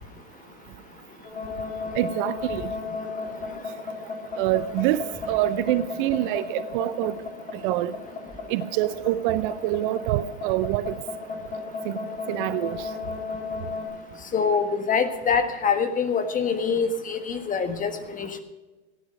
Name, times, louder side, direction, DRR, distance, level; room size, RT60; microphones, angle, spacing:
sound 1, 1.2-13.8, left 4 dB, 75° left, 4.1 m, -33 dB
voice 1, 2.0-2.6 4.4-5.0 5.3-7.1 7.6-7.9 8.5-10.9 11.9-12.0 12.3-12.8, right 15 dB, 50° right, 0.6 m, -25 dB
voice 2, 14.3-18.4, left 5 dB, 25° left, 1.5 m, -25 dB
15.0 x 10.5 x 5.2 m
hypercardioid pair, 100°, 35 cm